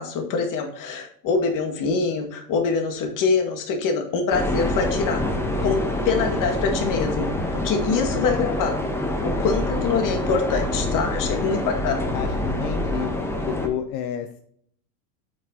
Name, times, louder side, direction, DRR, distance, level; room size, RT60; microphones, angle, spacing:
voice 1, 0.0-5.3 5.6-8.8 9.2-12.0, left 5 dB, 40° left, 4 dB, 2.1 m, -24 dB
sound 1, 4.3-13.7, left 1 dB, 5° left, 1.1 m, -26 dB
voice 2, 10.6-11.5 12.1-13.1 13.5-14.4, left 9 dB, 70° left, 6 dB, 1.0 m, -33 dB
8.6 x 6.3 x 3.9 m, 0.63 s
supercardioid pair, 135°, 49 cm